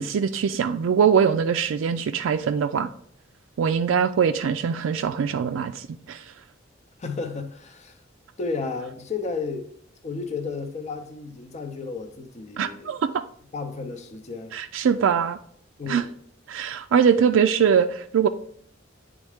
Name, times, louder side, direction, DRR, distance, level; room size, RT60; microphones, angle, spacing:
voice 1, 0.0-2.9 3.6-6.2 12.6-13.2 14.5-15.4 15.9-16.0 16.5-18.3, right 7 dB, 90° right, 0.4 m, -22 dB
voice 2, 7.0-8.0 8.4-9.7 10.0-12.9 13.5-14.6 15.8-16.1, left 4 dB, 35° left, 0.6 m, -33 dB
8.5 x 3.6 x 3.4 m
head